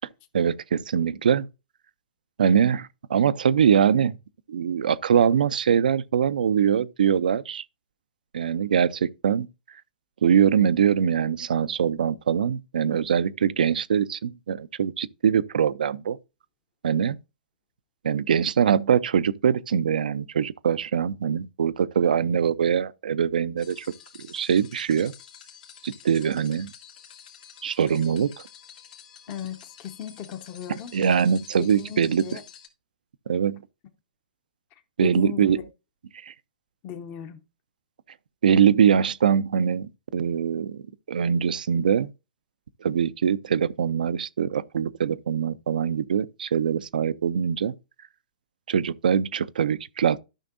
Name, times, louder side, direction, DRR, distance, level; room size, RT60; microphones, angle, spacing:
voice 1, 0.3-1.5 2.4-4.2 4.5-7.6 8.3-9.5 10.2-16.2 16.8-17.2 18.0-23.9 24.2-25.1 25.8-26.7 27.6-28.3 30.7-32.4 33.3-33.6 35.0-35.6 36.2-36.3 38.4-40.8 41.1-42.1 42.8-47.7 48.7-50.2, right 8 dB, 75° right, 0.5 m, -23 dB
sound 1, 23.6-32.7, left 8 dB, 65° left, 1.9 m, -49 dB
voice 2, 29.3-31.0 31.6-32.4 34.7-35.7 36.8-37.4, left 10 dB, 35° left, 1.0 m, -37 dB
12.5 x 5.8 x 2.6 m
hypercardioid pair, 125°, 5 cm